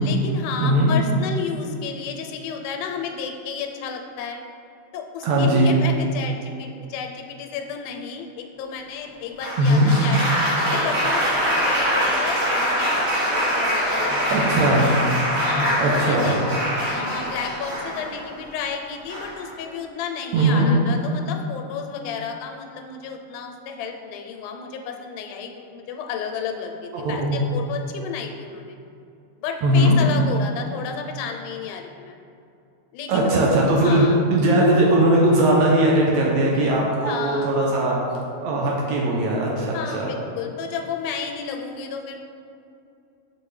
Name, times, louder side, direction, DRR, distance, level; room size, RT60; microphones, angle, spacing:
voice 1, 0.0-4.4 4.9-14.4 15.4-16.4 16.8-28.8 29.4-32.2 32.9-33.3 33.8-34.2 37.1-37.5 39.7-42.2, left 6 dB, 90° left, 3 dB, 2.1 m, -32 dB
voice 2, 0.6-0.9 5.2-5.7 9.6-9.9 14.3-14.9 15.8-16.3 20.3-20.7 26.9-27.4 29.6-30.0 33.1-34.1 34.3-38.0 38.4-40.1, right 1 dB, 75° right, -3 dB, 1.8 m, -19 dB
Applause, 9.4-18.3 19.1-19.5, equal, 60° right, 2.7 m, -23 dB
6.3 x 4.8 x 3.1 m, 2.6 s
omnidirectional pair, 3.5 m